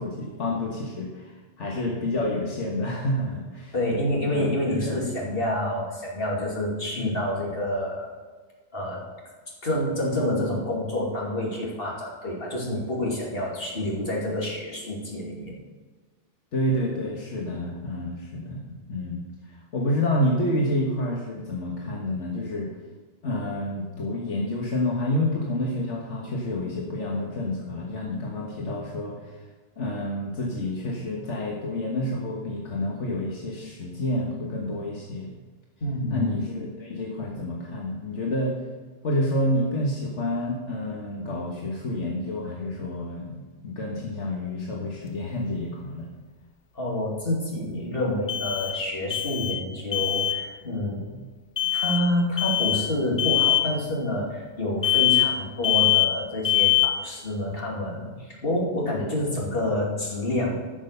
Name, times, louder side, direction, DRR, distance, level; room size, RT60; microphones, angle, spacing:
voice 1, 0.0-3.7 4.3-4.5 4.8-4.9 6.9-7.2 16.5-22.7 23.2-29.4 29.8-35.3 36.1-38.6 39.0-46.1 51.1-51.3, left 1 dB, 75° left, -2 dB, 1.6 m, -29 dB
voice 2, 3.7-8.1 8.7-9.0 9.6-15.5 35.8-36.2 46.7-51.0 51.7-60.7, left 1 dB, 55° left, -3 dB, 2.8 m, -28 dB
sound 1, 45.0-45.1 48.3-48.9 49.1-49.7 49.9-50.4 51.6-52.1 52.4-52.9 53.2-53.7 54.8-55.4 55.6-56.2 56.4-57.0, left 14 dB, 35° left, 0.5 m, -22 dB
11.5 x 6.3 x 6.6 m, 1.4 s
omnidirectional pair, 1.2 m